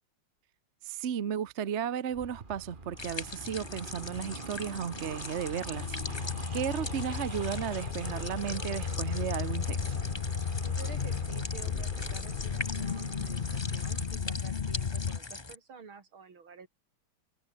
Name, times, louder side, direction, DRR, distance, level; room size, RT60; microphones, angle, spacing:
voice 1, 0.8-9.9, right 8 dB, 45° right, 1.0 m, -34 dB
sound 1, 2.1-14.2, right 3 dB, 25° right, 2.5 m, -44 dB
sound 2, 3.0-15.6, left 3 dB, 20° left, 0.9 m, -42 dB
sound 3, 5.7-15.2, left 6 dB, 65° left, 0.5 m, -34 dB
voice 2, 10.6-16.7, right 5 dB, 75° right, 3.7 m, -49 dB
omnidirectional pair, 2.3 m